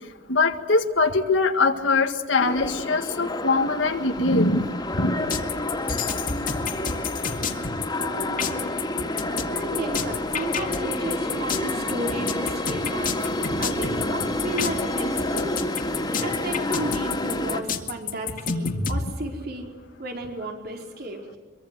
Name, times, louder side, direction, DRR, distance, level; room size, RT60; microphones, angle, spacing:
voice 1, 0.3-4.7 4.9-5.3 13.5-13.6, left 3 dB, 75° left, 5 dB, 1.8 m, -22 dB
sound 1, 2.4-17.6, left 1 dB, 20° left, 2.6 m, -29 dB
sound 2, 5.3-19.0, left 6 dB, 50° left, 2.2 m, -29 dB
voice 2, 8.0-8.8 9.5-15.5 16.2-19.7 20.0-21.4, right 1 dB, 55° right, 2 dB, 5.0 m, -34 dB
24.5 x 23.5 x 7.8 m, 1.3 s
head